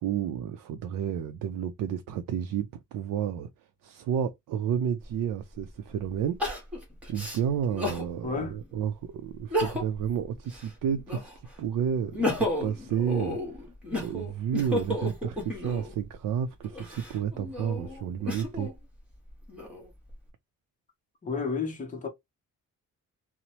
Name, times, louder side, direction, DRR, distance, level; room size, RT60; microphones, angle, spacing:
voice 1, 0.0-3.5 3.8-6.4 7.1-11.3 11.6-13.4 13.9-18.7, right 8 dB, 85° right, 0.5 m, -31 dB
Crying sobbing, 5.0-5.1 6.4-8.1 8.6-8.7 9.4-10.1 10.4-11.5 11.9-15.9 16.6-18.7 19.3-20.1, left 1 dB, 5° right, 1.1 m, -32 dB
voice 2, 8.2-8.6 21.2-22.1, left 5 dB, 25° left, 0.7 m, -31 dB
2.9 x 2.0 x 2.7 m
wide cardioid pair, 180°, 32 cm